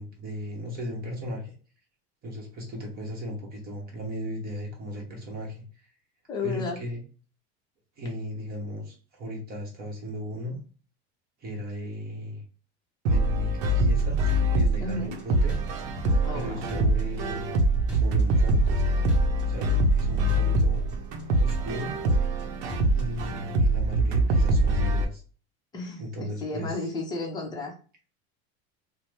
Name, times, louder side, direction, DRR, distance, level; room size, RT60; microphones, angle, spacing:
voice 1, 0.0-1.5 2.2-5.6 6.4-7.0 8.0-10.6 11.4-12.4 13.1-15.6 16.3-17.6 17.9-18.8 19.4-20.9 21.4-22.0 22.9-25.2 26.0-26.8, equal, 30° right, 0 dB, 1.0 m, -36 dB
voice 2, 6.3-6.8 14.8-15.2 16.2-16.7 25.7-27.7, left 3 dB, 10° left, -1 dB, 0.7 m, -33 dB
sound 1, 13.1-25.1, right 1 dB, 80° right, 0.7 m, -24 dB
sound 2, 13.7-14.0 14.3-15.2 15.5-16.4 16.7-17.6 17.9-18.8 19.1-20.0 20.3-21.2 21.5-22.4 22.7-23.3, equal, 10° right, 1.2 m, -37 dB
2.8 x 2.1 x 3.3 m, 0.38 s
supercardioid pair, 150°, 33 cm